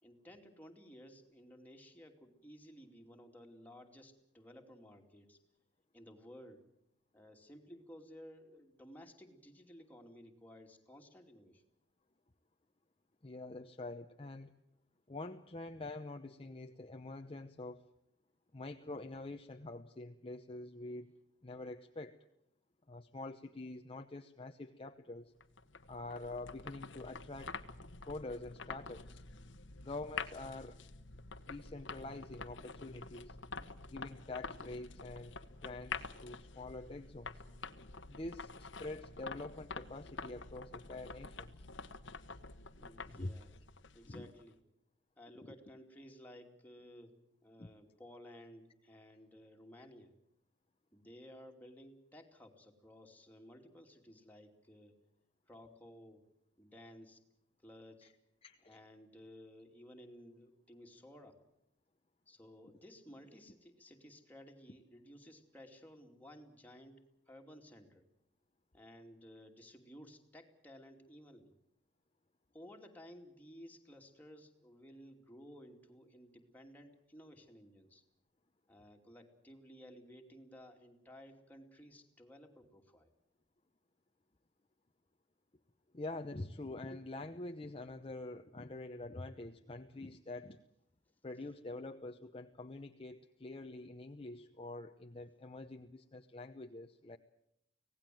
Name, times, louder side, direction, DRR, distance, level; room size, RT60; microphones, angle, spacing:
voice 1, 0.0-5.4 5.9-6.6 7.1-11.6 42.8-43.5 43.9-44.6 45.2-47.1 47.4-50.1 50.9-54.9 55.5-56.2 56.6-57.2 57.6-58.1 58.7-61.4 62.3-67.0 67.3-68.0 68.7-71.5 72.5-78.0 78.7-83.1, equal, 10° left, 2 dB, 2.7 m, -56 dB
voice 2, 13.2-14.6 15.1-17.8 18.5-21.1 21.4-22.2 22.9-25.3 25.9-27.6 28.0-29.2 29.8-30.8 31.5-33.4 33.9-35.3 35.6-37.4 38.1-41.5 43.1-43.3 44.1-44.3 47.6-47.7 58.4-58.8 85.9-90.6 91.2-97.2, left 2 dB, 30° left, 5 dB, 0.8 m, -46 dB
sound 1, 25.4-44.4, left 4 dB, 70° left, 1.2 m, -48 dB
25.0 x 18.0 x 7.7 m, 0.78 s
head